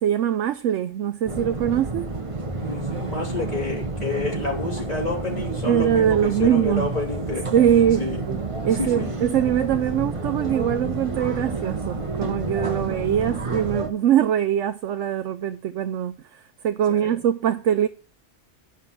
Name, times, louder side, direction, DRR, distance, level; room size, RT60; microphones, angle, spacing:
voice 1, 0.0-2.1 5.7-6.9 7.5-17.9, right 10 dB, 85° right, 1.0 m, -22 dB
sound 1, 1.3-13.9, right 3 dB, 30° right, 1.1 m, -30 dB
voice 2, 2.6-7.5 8.0-8.2 8.8-9.2 17.0-17.2, left 3 dB, 35° left, 3.6 m, -29 dB
10.5 x 5.6 x 5.9 m
omnidirectional pair, 1.2 m